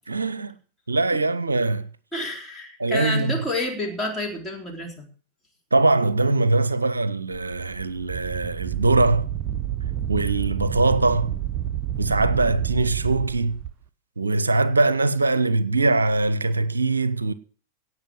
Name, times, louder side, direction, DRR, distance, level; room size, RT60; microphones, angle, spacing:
voice 1, 0.1-0.6 0.9-1.9 2.8-3.4 5.7-9.3 10.1-11.3 12.0-13.6 14.2-17.3, right 2 dB, 80° right, 0.6 m, -22 dB
voice 2, 2.1-5.1, left 1 dB, 15° left, 3.8 m, -29 dB
Wind, 7.3-13.7, right 11 dB, 35° right, 0.8 m, -30 dB
17.5 x 6.0 x 7.3 m
figure-of-eight pair, 90°, 0 cm